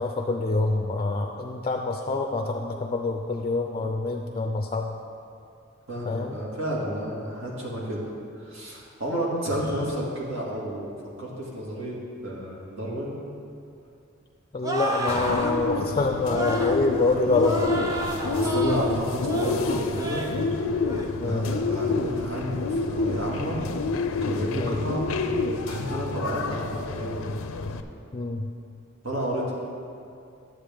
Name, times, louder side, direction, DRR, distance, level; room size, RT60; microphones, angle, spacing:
voice 1, 0.0-4.9 6.1-6.4 14.5-17.7 21.2-21.5 24.6-24.8 28.1-28.5, left 3 dB, 30° left, 4 dB, 0.4 m, -26 dB
voice 2, 5.9-8.0 8.4-13.2 18.3-20.3 21.2-23.6 24.2-25.1 25.7-27.3 29.0-29.5, equal, 75° right, -4 dB, 2.0 m, -31 dB
sound 1, 14.6-15.5 16.3-16.8 17.3-18.9 19.2-19.6 19.9-20.4 20.8-21.1, right 2 dB, 15° right, 0.7 m, -30 dB
Bird, 15.1-27.8, left 3 dB, 85° left, 0.5 m, -28 dB
11.5 x 7.9 x 3.5 m, 2.5 s
head